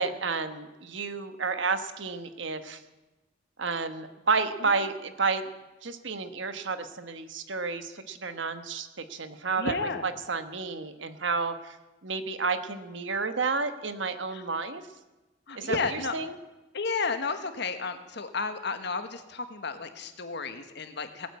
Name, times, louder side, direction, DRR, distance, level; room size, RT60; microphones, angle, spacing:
voice 1, 0.0-2.8 3.6-5.5 5.8-11.8 12.0-14.8 15.5-16.3, right 4 dB, 65° right, 10 dB, 1.2 m, -31 dB
voice 2, 9.6-10.1 14.3-14.4 15.5-16.1 16.7-21.3, left 4 dB, 60° left, 9 dB, 1.4 m, -32 dB
18.5 x 9.2 x 8.3 m, 1.1 s
head